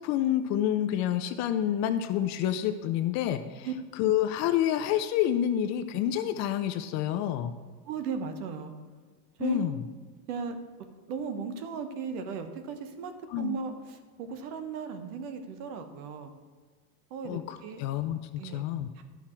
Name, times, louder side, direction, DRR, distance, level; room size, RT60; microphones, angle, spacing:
voice 1, 0.0-3.7 4.0-7.5 9.4-9.8 13.3-13.6 17.3-18.9, left 11 dB, 40° left, 9 dB, 0.4 m, -28 dB
voice 2, 7.8-8.7 9.4-9.6 10.3-10.6 11.1-16.3 17.1-17.8 18.4-18.6 18.9-19.0, right 6 dB, 70° right, 8 dB, 1.3 m, -36 dB
11.5 x 5.9 x 4.5 m, 1.5 s
supercardioid pair, 140°, 47 cm